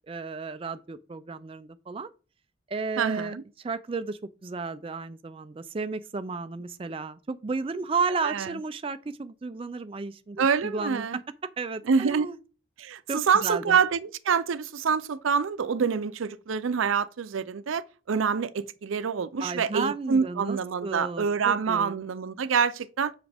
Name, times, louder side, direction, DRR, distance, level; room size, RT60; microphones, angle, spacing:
voice 1, 0.1-2.1 2.7-3.3 3.6-11.1 11.4-12.4 13.1-13.8 19.4-22.0, right 4 dB, 25° right, 0.3 m, -33 dB
voice 2, 3.0-3.4 8.2-8.5 10.4-11.2 11.9-12.3 12.8-23.1, right 6 dB, 85° right, 0.5 m, -26 dB
7.3 x 5.9 x 3.4 m
head